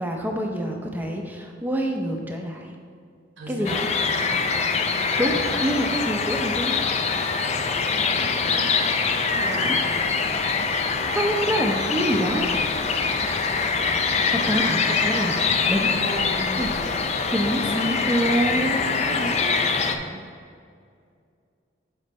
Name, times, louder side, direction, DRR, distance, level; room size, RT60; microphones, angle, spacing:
voice 1, 0.0-2.7 3.5-3.9 5.2-6.8 11.1-12.5 14.5-15.9 16.6-16.7 17.3-19.7, equal, 10° right, 1 dB, 0.7 m, -26 dB
voice 2, 3.4-4.9 5.4-5.7 8.1-8.9 9.3-9.8 14.1-14.8 15.8-17.0 18.9-20.3, right 1 dB, 70° right, 1 dB, 1.1 m, -37 dB
sound 1, 3.6-19.9, left 4 dB, 35° left, 0.4 m, -24 dB
7.2 x 5.3 x 4.2 m, 2.3 s
head